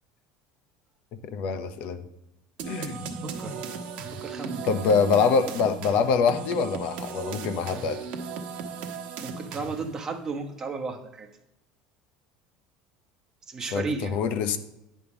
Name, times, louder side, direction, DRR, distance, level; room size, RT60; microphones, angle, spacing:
voice 1, 1.3-2.0 2.7-3.0 4.7-8.0 13.7-14.6, left 5 dB, 60° left, 10 dB, 0.8 m, -25 dB
sound 1, 2.6-10.0, right 5 dB, 55° right, 1.1 m, -37 dB
voice 2, 4.1-5.0 9.2-11.3 13.5-14.2, right 4 dB, 20° right, 4 dB, 1.0 m, -34 dB
9.5 x 3.6 x 7.0 m, 0.92 s
cardioid pair, 140°, 3 cm